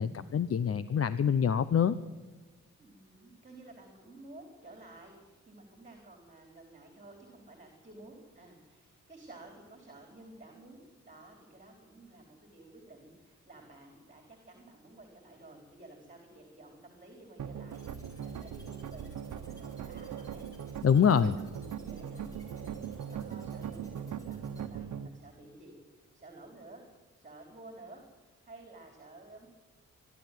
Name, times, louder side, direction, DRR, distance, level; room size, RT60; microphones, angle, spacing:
voice 1, 0.0-2.0 20.8-21.3, left 7 dB, 50° left, 14 dB, 0.7 m, -25 dB
voice 2, 2.8-26.8 27.1-29.5, right 2 dB, 25° right, 2 dB, 4.2 m, -53 dB
sound 1, 17.4-25.1, right 8 dB, 85° right, 1.2 m, -40 dB
sound 2, 17.7-24.6, equal, 10° left, 7.6 m, -60 dB
23.5 x 12.5 x 9.3 m, 1.3 s
cardioid pair, 100°, 30 cm